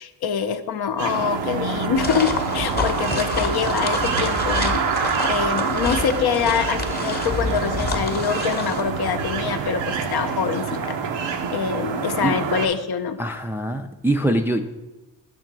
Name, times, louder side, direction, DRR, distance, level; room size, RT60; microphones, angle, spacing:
voice 1, 0.0-13.2, left 7 dB, 60° left, 8 dB, 0.7 m, -25 dB
sound 1, 1.0-12.7, right 5 dB, 80° right, 0.8 m, -26 dB
sound 2, 2.0-8.8, left 3 dB, 20° left, 0.9 m, -28 dB
voice 2, 13.2-14.6, right 1 dB, 5° right, 5 dB, 0.4 m, -23 dB
6.5 x 3.9 x 5.9 m, 1.0 s
cardioid pair, 75°, 44 cm